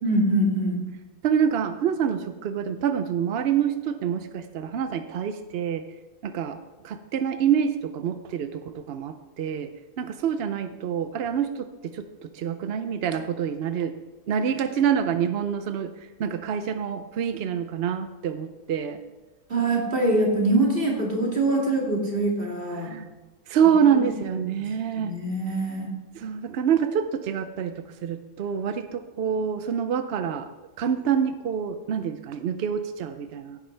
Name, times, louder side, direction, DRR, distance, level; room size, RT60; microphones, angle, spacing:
voice 1, 0.0-0.8 19.5-23.0 25.0-25.9, right 2 dB, 35° right, -1 dB, 2.5 m, -24 dB
voice 2, 1.2-5.9 6.2-9.7 10.0-14.0 14.3-19.0 22.7-23.1 23.5-25.1 26.1-33.6, right 8 dB, 65° right, 9 dB, 0.6 m, -26 dB
16.0 x 9.6 x 3.3 m, 1.1 s
omnidirectional pair, 1.6 m